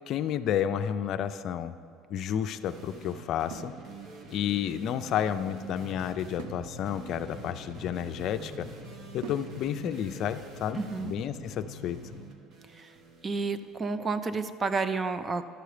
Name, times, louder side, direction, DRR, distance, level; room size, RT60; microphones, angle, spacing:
voice 1, 0.1-1.8 2.1-3.7 4.3-8.7 9.1-12.0, left 9 dB, 55° left, 10 dB, 0.4 m, -31 dB
sound 1, 0.9-1.9 3.5-4.4 6.4-8.4 9.2-10.0, right 6 dB, 90° right, 0.5 m, -48 dB
sound 2, 2.6-14.1, right 4 dB, 55° right, 1.1 m, -47 dB
sound 3, 5.8-12.3, left 3 dB, 30° left, 1.0 m, -47 dB
voice 2, 10.7-11.1 12.7-12.9 13.2-15.4, right 4 dB, 30° right, 11 dB, 0.5 m, -30 dB
12.0 x 6.8 x 4.9 m, 2.4 s
supercardioid pair, 110°, 0 cm